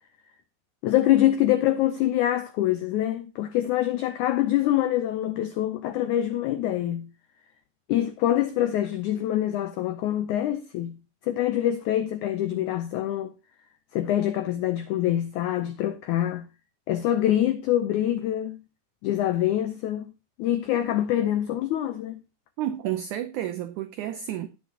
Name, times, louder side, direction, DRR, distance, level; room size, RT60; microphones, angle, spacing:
voice 1, 0.8-7.1 7.9-11.0 11.2-13.3 13.9-16.4 16.9-18.6 19.0-20.1 20.4-22.2, left 12 dB, 90° left, 1.7 m, -25 dB
voice 2, 22.6-24.5, right 11 dB, 85° right, 1.7 m, -31 dB
17.5 x 6.0 x 2.8 m
omnidirectional pair, 4.3 m